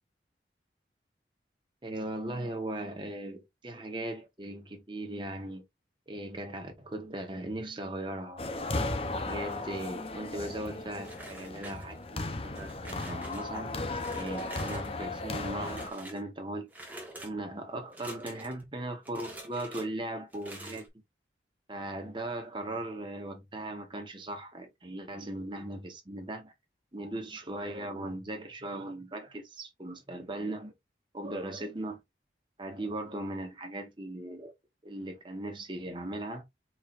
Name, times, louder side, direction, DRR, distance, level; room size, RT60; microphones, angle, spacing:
voice 1, 1.8-5.6 6.1-8.4 9.2-13.7 14.1-16.7 17.2-20.9 21.7-26.5 26.9-30.7 31.1-32.0 32.6-34.5 34.8-36.4, right 1 dB, 25° right, 1.2 m, -38 dB
sound 1, 8.4-15.9, left 2 dB, 35° left, 0.7 m, -36 dB
sound 2, 11.0-12.1 12.5-13.4 14.0-14.9 15.3-16.2 16.7-17.3 17.9-18.6 19.0-19.9 20.3-20.9, right 1 dB, 10° right, 1.3 m, -47 dB
4.7 x 4.4 x 2.5 m
head